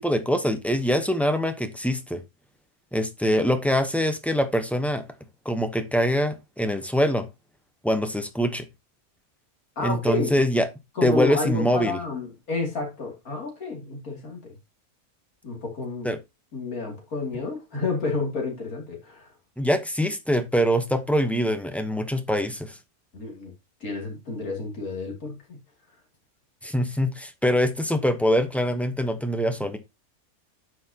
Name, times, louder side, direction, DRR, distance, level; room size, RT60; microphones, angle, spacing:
voice 1, 0.0-2.2 2.9-5.0 5.4-7.3 7.8-8.6 9.8-10.7 11.0-12.0 16.0-16.2 19.6-22.8 26.6-29.8, equal, ahead, 0.6 m, -24 dB
voice 2, 9.8-10.4 10.9-14.6 15.4-16.1 16.5-19.3 23.1-23.5 23.8-25.6, left 3 dB, 75° left, 3.1 m, -30 dB
9.4 x 5.8 x 2.8 m
omnidirectional pair, 1.6 m